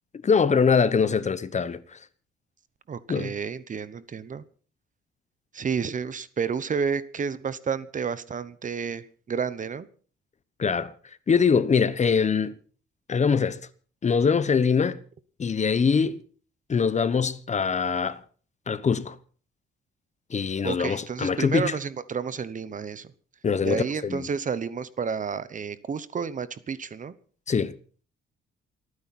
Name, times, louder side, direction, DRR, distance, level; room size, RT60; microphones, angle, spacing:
voice 1, 0.2-2.0 3.1-3.3 10.6-10.9 11.3-12.6 13.1-13.6 14.0-15.0 15.4-16.2 16.7-18.2 18.7-19.2 20.3-21.7 23.4-24.3 27.5-27.7, left 5 dB, 35° left, 1.1 m, -23 dB
voice 2, 2.9-4.4 5.5-9.9 20.6-23.1 23.6-27.1, right 6 dB, 40° right, 1.0 m, -31 dB
29.0 x 9.7 x 4.3 m
cardioid pair, 90°, 20 cm